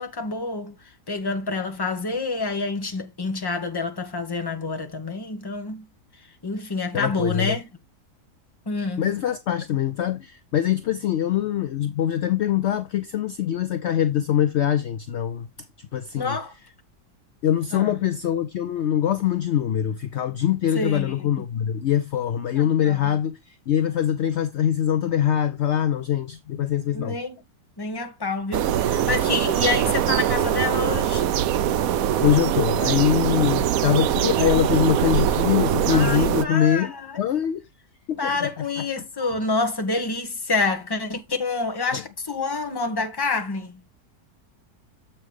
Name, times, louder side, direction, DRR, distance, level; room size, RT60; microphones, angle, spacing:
voice 1, 0.0-5.9 6.4-7.6 8.7-9.1 16.2-16.5 17.7-17.9 20.7-21.3 22.5-23.1 26.9-27.4 27.8-31.3 33.5-33.6 35.9-37.2 38.2-43.8, left 3 dB, 15° left, 0.9 m, -28 dB
voice 2, 6.9-7.6 9.0-15.5 15.8-16.4 17.4-27.2 32.2-37.6 38.1-38.5 41.9-42.0, left 10 dB, 70° left, 0.6 m, -23 dB
sound 1, 28.5-36.4, right 10 dB, 70° right, 0.9 m, -22 dB
7.4 x 5.8 x 3.3 m
omnidirectional pair, 1.8 m